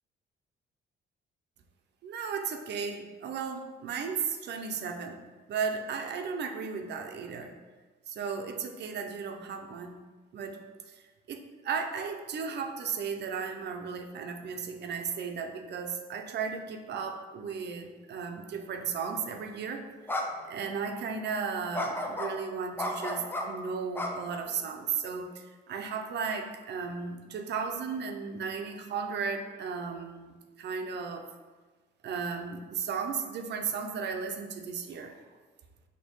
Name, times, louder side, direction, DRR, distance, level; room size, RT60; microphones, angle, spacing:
voice 1, 2.0-5.2 5.5-7.6 8.1-10.0 10.3-10.6 10.9-19.8 20.5-31.3 32.0-35.2, right 5 dB, 60° right, 4 dB, 0.5 m, -35 dB
sound 1, 19.2-19.4 20.1-20.2 20.6-20.7 21.7-22.3 22.8-23.4 23.9-24.7, left 1 dB, 10° left, 0.5 m, -33 dB
4.3 x 2.7 x 3.0 m, 1.3 s
cardioid pair, 90°, 20 cm